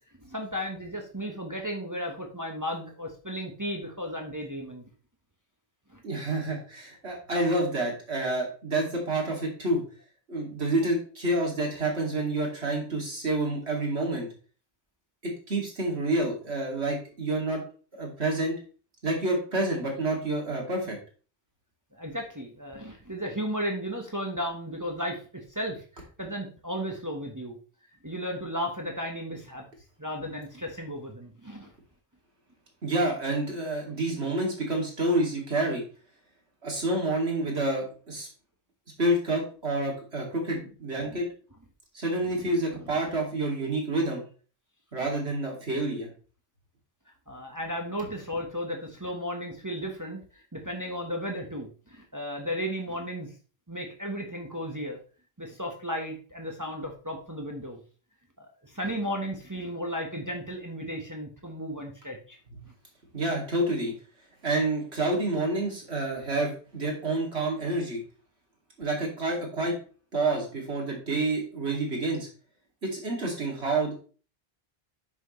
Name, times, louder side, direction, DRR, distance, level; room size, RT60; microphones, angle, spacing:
voice 1, 0.2-4.8 5.9-6.0 21.9-27.6 28.0-29.6 30.0-31.7 41.1-41.2 42.3-42.4 47.3-53.3 53.7-55.0 55.4-57.8 58.4-62.4 62.6-62.7, equal, 20° right, 2 dB, 1.3 m, -34 dB
voice 2, 6.0-9.8 10.3-14.3 15.2-17.6 17.9-18.6 19.0-21.0 32.8-35.8 36.6-38.3 39.0-41.3 41.9-44.2 44.9-46.1 62.5-62.6 63.1-63.9 64.4-68.0 68.8-69.8 70.1-72.3 72.8-73.9, right 2 dB, 80° right, 0 dB, 3.0 m, -28 dB
10.0 x 6.2 x 3.2 m, 0.38 s
omnidirectional pair, 1.1 m